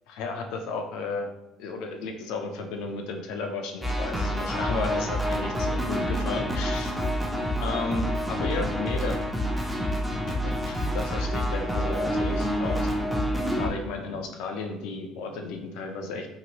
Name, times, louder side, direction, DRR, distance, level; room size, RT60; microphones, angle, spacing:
voice 1, 0.1-1.3 1.6-7.0 7.6-9.2 10.1-12.9 13.6-16.3, left 3 dB, 85° left, 4 dB, 0.5 m, -33 dB
sound 1, 3.8-13.7, equal, 10° right, 0.4 m, -28 dB
2.9 x 2.6 x 2.9 m, 0.98 s
cardioid pair, 135°, 0 cm